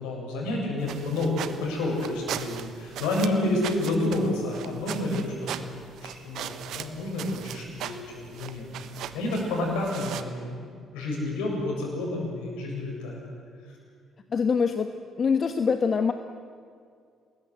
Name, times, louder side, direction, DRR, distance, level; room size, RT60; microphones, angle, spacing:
voice 1, 0.0-5.6 6.0-13.2, left 2 dB, 75° left, -1 dB, 7.1 m, -29 dB
sound 1, 0.8-10.2, right 10 dB, 65° right, 1.2 m, -39 dB
voice 2, 14.3-14.9 15.2-16.1, left 5 dB, 45° left, 8 dB, 1.2 m, -24 dB
27.0 x 20.5 x 8.1 m, 2.2 s
hypercardioid pair, 45°, 0 cm